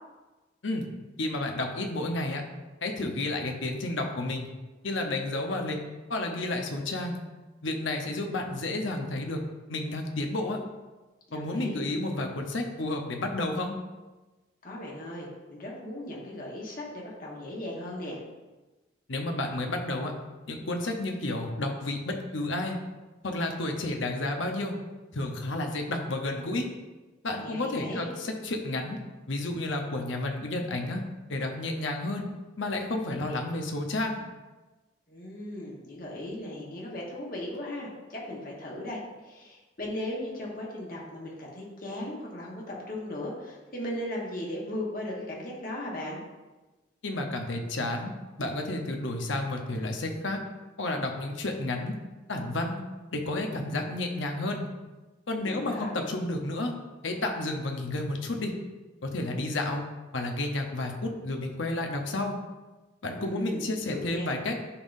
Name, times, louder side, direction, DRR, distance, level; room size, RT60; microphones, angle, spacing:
voice 1, 1.2-2.4 2.8-4.5 4.8-5.8 6.1-7.2 7.6-9.4 9.7-10.6 11.3-13.7 19.1-20.1 20.5-22.8 23.2-24.7 25.1-26.7 27.2-29.0 29.3-31.0 31.3-32.2 32.6-34.2 47.0-48.1 48.4-50.4 50.8-51.9 52.3-52.8 53.1-54.7 55.3-56.7 57.0-58.5 59.0-59.9 60.1-62.3 63.0-64.6, left 2 dB, 75° left, 3 dB, 0.9 m, -31 dB
voice 2, 11.3-11.8 14.6-18.2 27.4-28.1 35.1-46.2 55.4-55.9 63.2-64.3, left 1 dB, 45° left, -3 dB, 1.4 m, -37 dB
11.0 x 3.7 x 2.7 m, 1.2 s
head